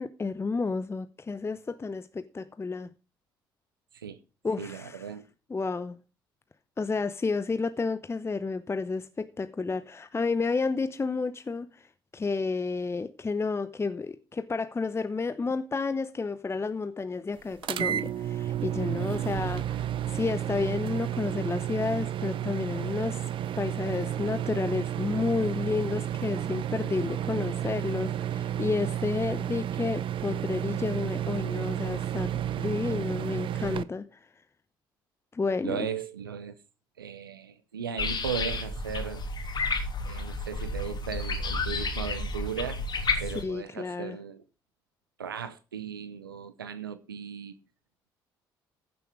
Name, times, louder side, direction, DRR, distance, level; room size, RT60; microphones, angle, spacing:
voice 1, 0.0-2.9 4.4-5.1 5.5-6.0 6.8-11.9 12.1-23.2 23.6-34.2 35.3-35.8 43.4-44.2, left 4 dB, 25° left, 0.8 m, -31 dB
voice 2, 4.6-5.2 35.6-36.6 37.0-39.2 40.0-42.8 43.2-44.4 45.2-47.5, right 7 dB, 90° right, 0.6 m, -36 dB
sound 1, 17.6-33.8, right 11 dB, 50° right, 0.7 m, -31 dB
sound 2, 38.0-43.4, left 3 dB, 40° left, 3.2 m, -31 dB
15.5 x 6.9 x 4.8 m
figure-of-eight pair, 50°, 11 cm